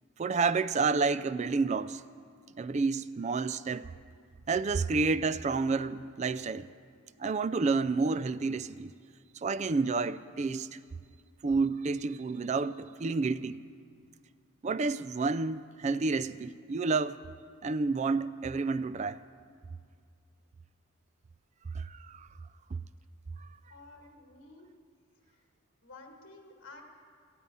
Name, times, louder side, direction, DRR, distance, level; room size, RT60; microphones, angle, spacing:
voice 1, 0.2-2.0 2.6-3.9 4.5-6.7 7.2-8.9 9.3-10.8 11.4-13.6 14.6-17.2 17.6-19.2 21.7-22.3 23.4-23.5, right 4 dB, 30° right, 0.3 m, -30 dB
voice 2, 23.7-24.7 25.2-25.4 25.8-26.8, left 3 dB, 55° left, 1.9 m, -52 dB
14.0 x 9.2 x 9.7 m
head